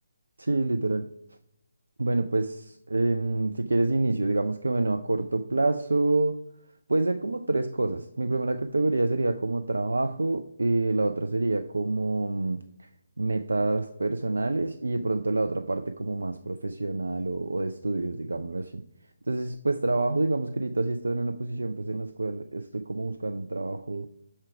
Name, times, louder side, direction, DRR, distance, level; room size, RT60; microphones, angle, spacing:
voice 1, 0.4-1.1 2.0-6.4 6.9-12.9 13.2-18.8 19.3-24.1, right 2 dB, 70° right, 0.4 m, -27 dB
6.0 x 4.4 x 4.7 m
figure-of-eight pair, 145°, 0 cm